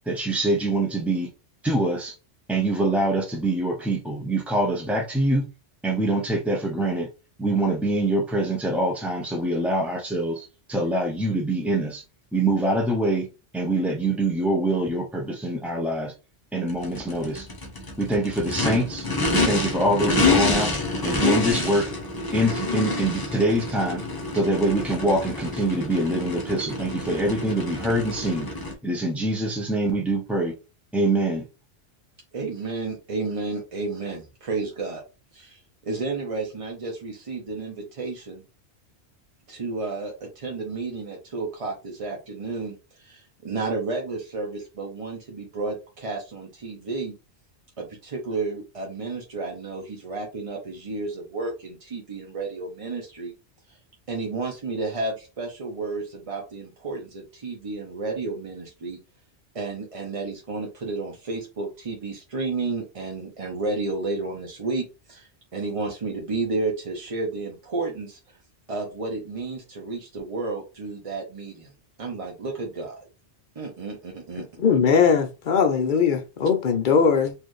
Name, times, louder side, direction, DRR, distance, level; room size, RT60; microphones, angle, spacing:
voice 1, 0.1-1.3 1.6-2.2 2.5-5.5 5.8-7.1 7.4-12.0 12.3-13.3 13.5-16.1 16.5-17.5 18.0-20.7 21.0-21.9 22.3-24.0 24.3-28.5 28.8-30.5 30.9-31.5, right 1 dB, ahead, 0.3 m, -24 dB
Race car auto racing / Idling / Accelerating revving vroom, 16.7-28.7, left 2 dB, 20° left, 0.8 m, -27 dB
voice 2, 32.3-35.0 35.3-38.4 39.5-47.1 47.8-53.3 53.7-53.8 54.1-59.0 59.5-68.4 68.7-71.7 72.0-73.0 73.6-74.5, right 3 dB, 35° right, 0.7 m, -32 dB
voice 3, 74.6-77.3, left 6 dB, 55° left, 0.7 m, -20 dB
4.3 x 2.6 x 3.1 m
omnidirectional pair, 1.2 m